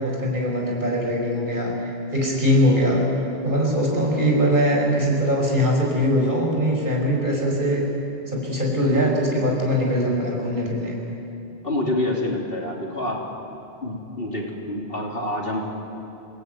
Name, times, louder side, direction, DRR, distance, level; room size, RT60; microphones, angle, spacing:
voice 1, 0.0-3.1 3.4-7.9 8.3-10.9, equal, 45° right, -1 dB, 5.8 m, -21 dB
voice 2, 11.6-13.2 13.8-15.7, left 1 dB, 55° left, -1 dB, 3.4 m, -27 dB
29.0 x 18.5 x 9.4 m, 2.8 s
omnidirectional pair, 1.2 m